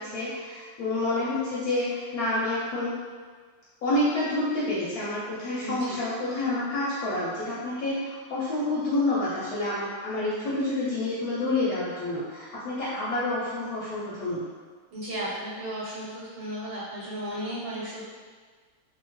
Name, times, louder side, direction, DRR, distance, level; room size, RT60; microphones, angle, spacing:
voice 1, 0.0-2.9 3.8-14.4, left 2 dB, 65° left, -9 dB, 1.0 m, -28 dB
voice 2, 5.6-6.0 14.9-18.0, equal, 85° right, -5 dB, 1.4 m, -34 dB
2.7 x 2.4 x 3.0 m, 1.5 s
omnidirectional pair, 1.9 m